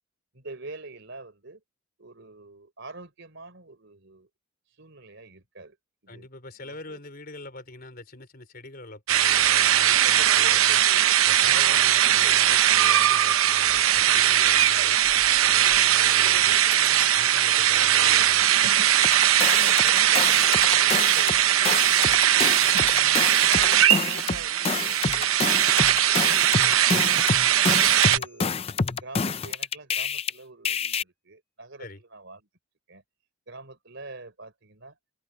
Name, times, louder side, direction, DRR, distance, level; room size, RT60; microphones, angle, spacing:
voice 1, 0.3-1.6 2.0-4.3 4.8-5.8 6.0-6.3 6.6-7.0 19.5-22.9 23.2-27.0 27.6-28.6 28.8-32.4 32.9-33.0 33.5-35.0, right 2 dB, 55° right, 4.1 m, -45 dB
voice 2, 6.1-10.8 11.2-16.7 17.1-18.6 31.8-32.0, left 2 dB, 45° left, 4.6 m, -44 dB
sound 1, 9.1-28.2, right 11 dB, 70° right, 0.8 m, -20 dB
sound 2, 16.2-18.5 22.2-23.9 27.3-29.1, left 3 dB, 10° left, 5.6 m, -49 dB
sound 3, 19.0-21.4 21.6-30.3 30.6-31.0, left 5 dB, 25° left, 0.5 m, -28 dB
head